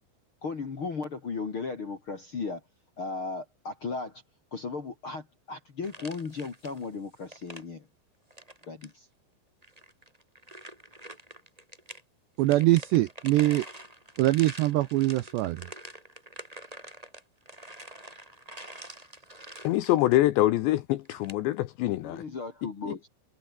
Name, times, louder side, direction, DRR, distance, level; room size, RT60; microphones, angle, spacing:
voice 1, 0.4-2.6 3.0-4.2 4.5-7.9 8.7-9.1 22.0-23.1, left 4 dB, 45° left, 1.7 m, -36 dB
sound 1, 5.8-6.9 7.2-7.6 8.3-8.9 9.6-12.0 12.4-20.2 21.0-21.3, right 1 dB, 5° right, 4.1 m, -46 dB
voice 2, 12.4-13.7 14.2-15.7, right 17 dB, 80° right, 2.5 m, -23 dB
voice 3, 19.6-22.2 22.9-23.0, left 15 dB, 75° left, 2.7 m, -25 dB
omnidirectional pair, 6.0 m